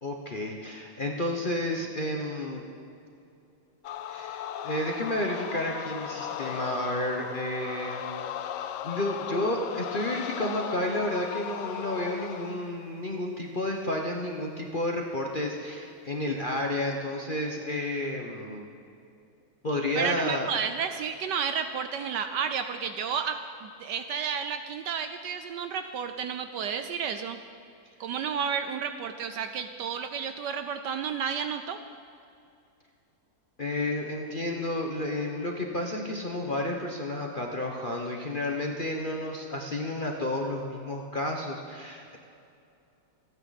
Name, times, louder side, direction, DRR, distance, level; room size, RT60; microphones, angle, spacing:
voice 1, 0.0-2.6 4.1-8.1 8.8-18.6 19.6-20.5 33.6-42.2, left 1 dB, 35° left, 0 dB, 0.9 m, -31 dB
sound 1, 3.8-12.7, left 10 dB, 75° left, 1.1 m, -37 dB
voice 2, 20.0-27.4 28.0-31.8, right 7 dB, 70° right, 8 dB, 1.1 m, -31 dB
27.0 x 9.7 x 4.1 m, 2.6 s
omnidirectional pair, 2.2 m